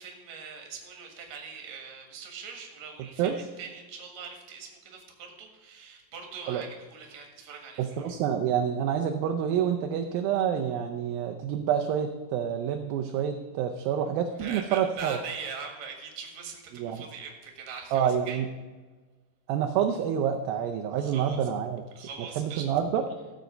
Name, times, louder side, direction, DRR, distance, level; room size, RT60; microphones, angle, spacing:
voice 1, 0.0-8.2 14.4-18.4 21.0-21.5 21.9-22.7, right 5 dB, 55° right, 2 dB, 2.7 m, -42 dB
voice 2, 7.8-15.2 16.8-17.0 17.9-18.5 19.5-21.8 22.4-23.0, right 8 dB, 80° right, 5 dB, 2.4 m, -27 dB
13.5 x 7.7 x 5.2 m, 1.3 s
omnidirectional pair, 4.5 m